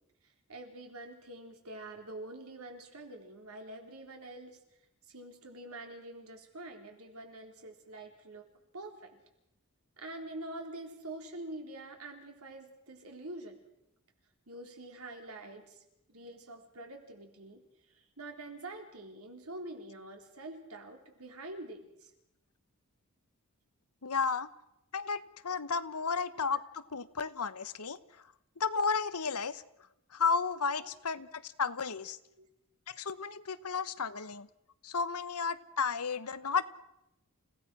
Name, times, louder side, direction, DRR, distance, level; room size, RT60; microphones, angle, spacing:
voice 1, 0.5-4.6 5.1-8.5 8.7-9.2 10.0-13.6 14.5-15.8 16.1-17.6 17.9-22.1 30.8-30.9 32.4-32.5 34.1-34.2, right 2 dB, 75° right, 3 dB, 3.8 m, -46 dB
voice 2, 24.0-24.5 24.9-28.0 28.6-29.6 30.1-32.2 32.9-34.5 34.8-36.6, left 5 dB, 90° left, 13 dB, 1.2 m, -33 dB
29.0 x 17.0 x 6.2 m, 0.85 s
head